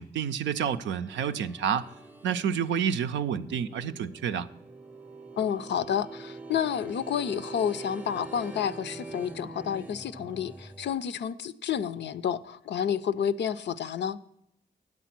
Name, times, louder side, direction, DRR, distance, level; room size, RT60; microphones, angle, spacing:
voice 1, 0.0-1.9 2.2-4.5, right 8 dB, 85° right, 0.5 m, -29 dB
sound 1, 0.9-10.9, right 3 dB, 10° right, 0.6 m, -44 dB
voice 2, 5.3-14.2, left 8 dB, 70° left, 0.5 m, -30 dB
9.0 x 7.4 x 5.9 m
cardioid pair, 50°, 19 cm